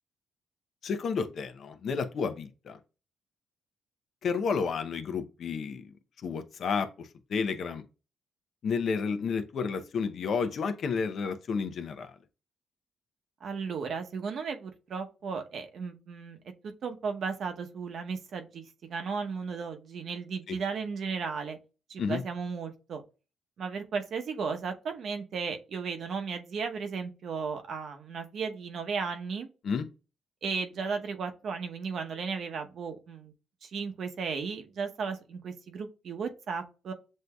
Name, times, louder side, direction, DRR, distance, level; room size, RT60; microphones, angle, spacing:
voice 1, 0.8-2.8 4.2-5.9 6.2-7.8 8.6-12.1 20.5-20.6 22.0-22.2 29.6-29.9, left 5 dB, 60° left, 0.6 m, -31 dB
voice 2, 13.4-16.4 16.6-18.6 18.9-21.6 21.9-23.0 23.6-29.5 30.4-33.3 33.6-36.9, right 5 dB, 60° right, 0.8 m, -35 dB
7.4 x 2.6 x 2.3 m
cardioid pair, 90°, 0 cm